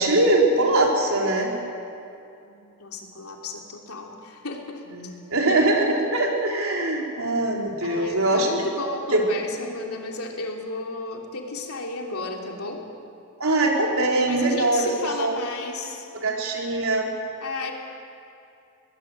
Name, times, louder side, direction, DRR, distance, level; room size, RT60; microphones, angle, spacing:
voice 1, 0.0-1.5 5.0-8.5 9.1-9.2 13.4-14.8 15.2-15.4 16.2-17.1, right 2 dB, 70° right, 0 dB, 3.8 m, -22 dB
voice 2, 2.4-5.1 7.8-12.9 14.3-16.1 17.4-17.7, left 3 dB, 90° left, 0 dB, 3.2 m, -33 dB
23.5 x 19.5 x 7.8 m, 2.6 s
head